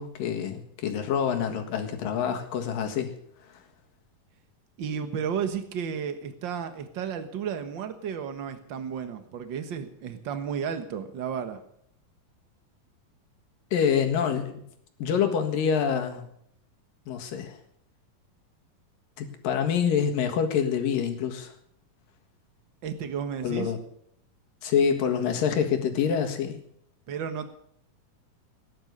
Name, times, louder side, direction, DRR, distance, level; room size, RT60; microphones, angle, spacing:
voice 1, 0.0-3.1 13.7-14.5 15.0-16.3 17.1-17.6 19.2-21.5 23.4-23.8 24.6-26.6, left 7 dB, 75° left, 5 dB, 3.3 m, -26 dB
voice 2, 4.8-11.6 22.8-23.7 27.1-27.5, right 7 dB, 55° right, 8 dB, 1.3 m, -33 dB
17.0 x 11.0 x 6.7 m, 0.69 s
omnidirectional pair, 4.0 m